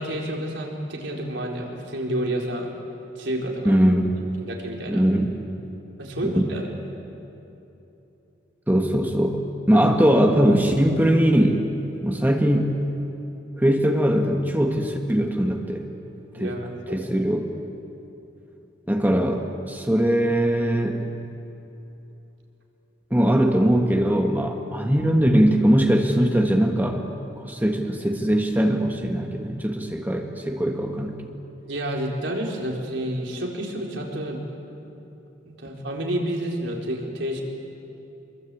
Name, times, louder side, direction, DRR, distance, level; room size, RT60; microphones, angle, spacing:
voice 1, 0.0-2.7 3.2-3.8 4.4-5.1 6.0-6.7 9.7-9.9 16.3-17.1 31.7-34.4 35.5-37.4, right 1 dB, 75° right, 0 dB, 4.3 m, -29 dB
voice 2, 3.6-4.1 4.9-5.3 6.2-6.5 8.7-9.4 9.7-11.7 12.0-12.8 13.6-15.8 16.3-16.5 16.9-17.5 18.9-21.0 23.1-27.1 27.4-31.3, equal, 10° right, 3 dB, 1.5 m, -21 dB
26.0 x 23.0 x 8.5 m, 3.0 s
head